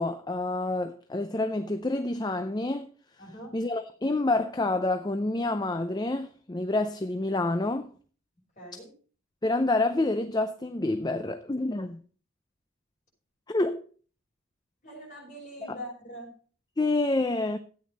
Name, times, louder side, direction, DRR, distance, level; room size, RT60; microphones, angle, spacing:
voice 1, 0.0-2.9 3.2-7.9 8.7-8.8 9.4-12.0 13.5-13.8 15.6-15.8 16.8-17.6, left 2 dB, 20° left, 0.5 m, -28 dB
voice 2, 3.2-3.5 8.6-8.9 14.8-16.3, equal, 35° left, 6.3 m, -42 dB
13.5 x 9.1 x 4.1 m
head